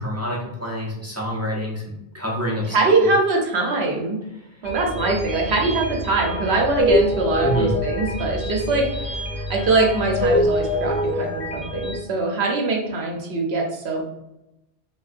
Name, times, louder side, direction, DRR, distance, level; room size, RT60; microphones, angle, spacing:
voice 1, 0.0-2.9 4.3-4.5 7.4-7.8, equal, 25° right, -4 dB, 0.3 m, -27 dB
voice 2, 2.7-4.2 4.6-14.0, right 3 dB, 75° right, 1 dB, 0.8 m, -22 dB
sound 1, 4.6-12.0, left 1 dB, 35° left, 0.7 m, -25 dB
3.4 x 2.2 x 2.4 m, 0.90 s
omnidirectional pair, 1.1 m